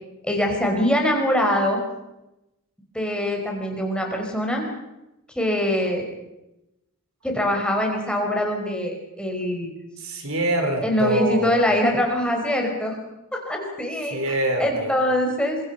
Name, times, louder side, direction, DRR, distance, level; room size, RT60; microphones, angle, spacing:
voice 1, 0.2-1.8 2.9-4.6 5.3-6.1 7.2-9.7 10.8-13.0 13.5-14.2 14.6-15.6, left 1 dB, 5° left, 1 dB, 4.9 m, -23 dB
voice 2, 10.0-11.5 14.1-14.9, right 1 dB, 65° right, 5 dB, 4.6 m, -24 dB
26.5 x 24.0 x 5.7 m, 0.93 s
head